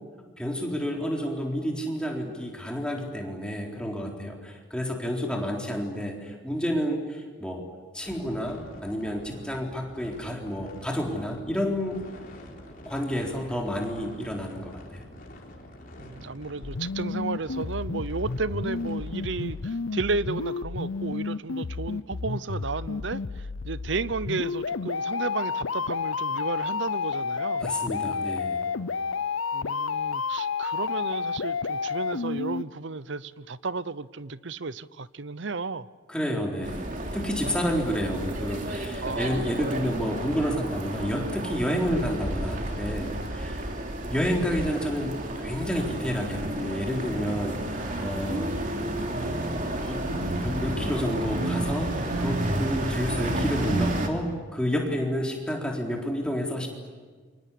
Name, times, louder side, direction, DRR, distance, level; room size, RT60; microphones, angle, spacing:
voice 1, 0.4-7.6 7.9-12.0 12.6-15.0 27.6-28.6 36.1-36.9 37.1-43.6 44.1-48.5 49.8-51.9 52.2-56.7, equal, 5° left, 0 dB, 3.9 m, -30 dB
sound 1, 8.0-19.6, left 1 dB, 45° left, 4.3 m, -46 dB
voice 2, 16.0-27.6 29.5-35.9 39.0-39.4, right 3 dB, 65° right, 17 dB, 0.8 m, -33 dB
sound 2, 16.6-32.6, left 5 dB, 85° left, 0.7 m, -31 dB
sound 3, 36.6-54.1, right 1 dB, 40° right, 3.1 m, -31 dB
28.0 x 25.0 x 8.5 m, 1.5 s
head